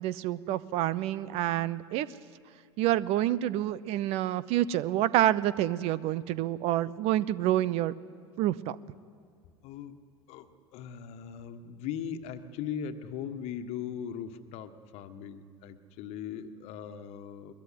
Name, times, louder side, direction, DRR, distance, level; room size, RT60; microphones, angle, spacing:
voice 1, 0.0-2.1 2.8-7.9 8.4-8.8, right 13 dB, 45° right, 19 dB, 0.8 m, -28 dB
voice 2, 9.6-10.0 10.3-17.5, left 8 dB, 45° left, 9 dB, 1.6 m, -39 dB
22.0 x 21.5 x 9.6 m, 2.2 s
figure-of-eight pair, 75°, 15 cm